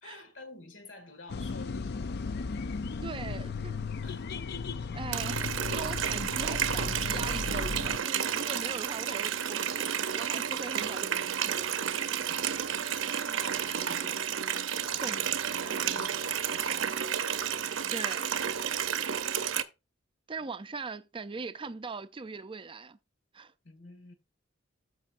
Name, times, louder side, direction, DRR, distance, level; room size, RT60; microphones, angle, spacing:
voice 1, 0.0-2.5 4.0-4.4 8.5-8.6 12.3-14.3 14.7-15.3 15.6-17.3 23.6-24.1, left 2 dB, 75° left, 1.9 m, -49 dB
sound 1, 1.3-8.0, left 4 dB, 55° left, 0.5 m, -35 dB
voice 2, 3.0-3.7 4.9-9.9 10.1-11.7 15.0-15.4 17.9-18.3 20.3-23.0 23.3-23.5, right 4 dB, 25° right, 0.5 m, -40 dB
Water tap faucet, 5.1-19.6, right 8 dB, 85° right, 0.7 m, -31 dB
13.0 x 5.6 x 2.5 m
head